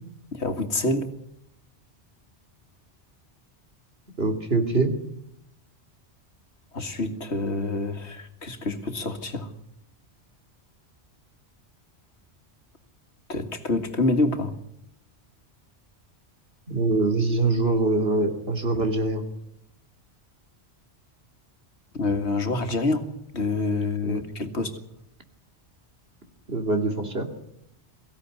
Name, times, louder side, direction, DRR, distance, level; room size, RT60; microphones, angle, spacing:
voice 1, 0.3-1.1 6.7-9.5 13.3-14.6 18.7-18.8 21.9-24.8, left 2 dB, 75° left, 2.3 m, -27 dB
voice 2, 4.2-4.9 16.7-19.2 24.0-24.2 26.5-27.3, right 3 dB, 60° right, 3.1 m, -24 dB
23.0 x 16.0 x 9.5 m
omnidirectional pair, 1.1 m